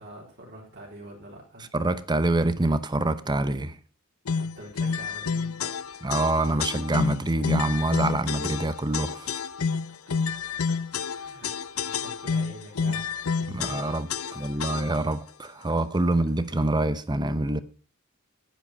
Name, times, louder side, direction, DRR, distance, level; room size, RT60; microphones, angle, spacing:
voice 1, 0.0-1.7 4.3-5.8 11.0-13.2 14.2-14.7, right 1 dB, 55° right, 3.9 m, -45 dB
voice 2, 1.7-3.8 6.0-9.4 13.4-17.6, right 2 dB, 20° right, 0.8 m, -26 dB
sound 1, 4.3-15.1, left 5 dB, 85° left, 0.7 m, -30 dB
10.0 x 10.0 x 5.5 m
head